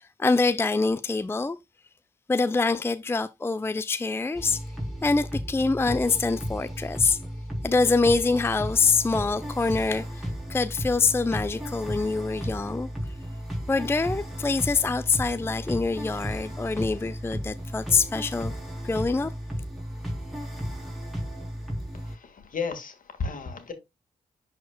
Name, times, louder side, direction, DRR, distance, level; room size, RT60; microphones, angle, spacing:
voice 1, 0.0-1.6 2.3-4.6 5.0-7.2 7.6-12.9 13.7-18.5 18.8-19.3, left 4 dB, 15° left, 0.4 m, -25 dB
sound 1, 4.3-22.2, equal, ahead, 3.5 m, -34 dB
voice 2, 21.9-23.7, left 5 dB, 60° left, 1.8 m, -34 dB
11.0 x 4.3 x 2.3 m
supercardioid pair, 45°, 16 cm